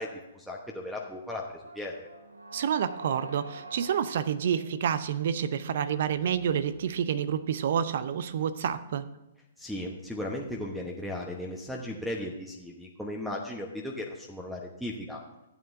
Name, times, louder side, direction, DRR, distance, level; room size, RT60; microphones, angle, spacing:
voice 1, 0.0-2.1 9.6-15.2, left 1 dB, ahead, 0 dB, 1.1 m, -36 dB
sound 1, 1.6-7.6, right 1 dB, 90° right, 1.1 m, -47 dB
voice 2, 2.5-9.0, right 8 dB, 60° right, 14 dB, 0.7 m, -29 dB
15.0 x 8.9 x 2.7 m, 0.97 s
figure-of-eight pair, 120°, 0 cm